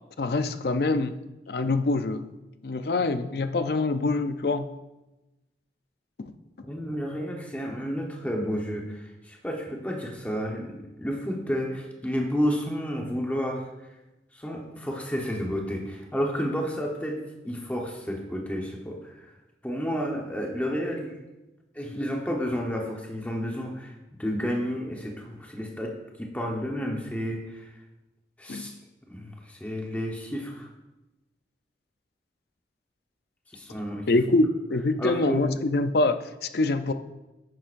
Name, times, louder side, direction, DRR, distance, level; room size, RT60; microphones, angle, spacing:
voice 1, 0.2-1.2 1.5-2.2 2.6-4.7 6.2-6.3 28.5-28.7 34.1-36.2 36.5-36.9, left 2 dB, 60° left, 10 dB, 0.5 m, -25 dB
voice 2, 6.6-13.7 14.3-19.3 19.6-21.2 21.7-25.9 26.2-27.7 28.4-28.7 29.1-30.7 33.5-34.1 35.0-35.5, equal, 10° left, 0 dB, 1.0 m, -31 dB
10.5 x 9.7 x 2.5 m, 1.0 s
head